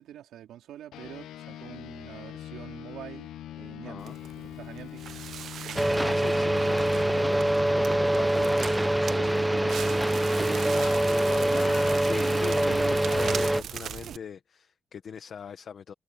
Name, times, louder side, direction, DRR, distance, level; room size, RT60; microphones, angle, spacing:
voice 1, 0.0-3.3 3.6-4.2 4.4-5.0 8.8-10.0, right 11 dB, 80° right, 3.8 m, -46 dB
sound 1, 0.9-10.7, left 11 dB, 85° left, 0.8 m, -43 dB
voice 2, 3.8-4.2 5.6-9.7 10.7-15.9, left 7 dB, 45° left, 1.1 m, -40 dB
Crackle, 4.0-14.2, right 9 dB, 60° right, 0.7 m, -39 dB
sound 2, 5.7-13.6, right 1 dB, 5° right, 0.5 m, -24 dB
cardioid pair, 145°, 0 cm